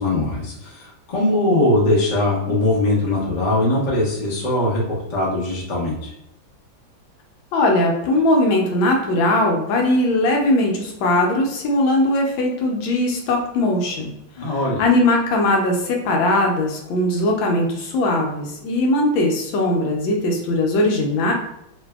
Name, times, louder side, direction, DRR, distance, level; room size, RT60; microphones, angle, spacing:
voice 1, 0.0-6.1 14.4-14.8, left 1 dB, 45° left, -5 dB, 0.6 m, -21 dB
voice 2, 7.5-14.1 14.5-21.3, left 1 dB, 80° left, 1 dB, 1.3 m, -19 dB
3.1 x 2.6 x 2.3 m, 0.80 s
omnidirectional pair, 2.2 m